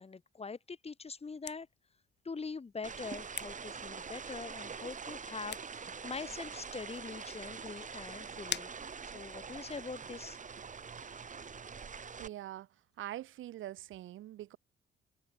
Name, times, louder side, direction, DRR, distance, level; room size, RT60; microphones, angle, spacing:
voice 1, 0.0-1.7 2.2-8.7 9.1-10.4 10.9-11.1, left 4 dB, 30° left, 4.3 m, -43 dB
sound 1, 1.0-9.6, left 9 dB, 60° left, 3.1 m, -49 dB
sound 2, 2.8-12.3, right 5 dB, 40° right, 4.8 m, -45 dB
voice 2, 12.2-12.7 13.0-14.6, right 13 dB, 80° right, 3.0 m, -43 dB
open air
cardioid pair, 90°, 20 cm